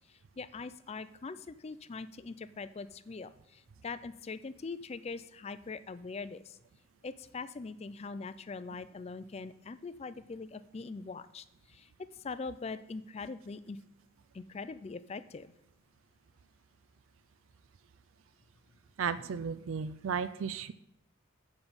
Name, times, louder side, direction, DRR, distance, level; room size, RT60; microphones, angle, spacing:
voice 1, 0.1-6.6 7.0-13.8 14.3-15.5, left 4 dB, 30° left, 14 dB, 0.4 m, -42 dB
voice 2, 19.0-20.7, right 6 dB, 70° right, 14 dB, 0.4 m, -34 dB
8.0 x 5.4 x 6.9 m, 0.80 s
head